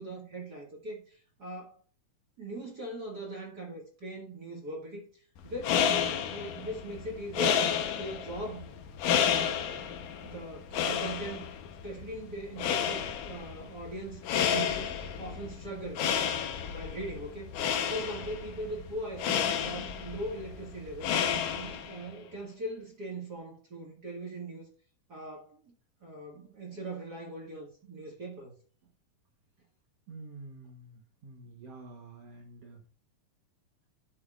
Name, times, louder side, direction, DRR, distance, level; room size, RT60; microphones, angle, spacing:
voice 1, 0.0-1.8 2.4-7.7 8.0-8.7 9.0-9.8 10.2-11.4 11.8-14.2 14.5-14.9 15.2-16.0 16.7-21.1 21.5-24.7 25.1-25.7 26.0-28.5, right 1 dB, 40° right, 1.8 m, -40 dB
sound 1, 5.4-22.1, left 8 dB, 85° left, 2.5 m, -31 dB
voice 2, 30.1-32.8, right 3 dB, 60° right, 2.0 m, -48 dB
11.5 x 7.1 x 2.4 m
omnidirectional pair, 3.6 m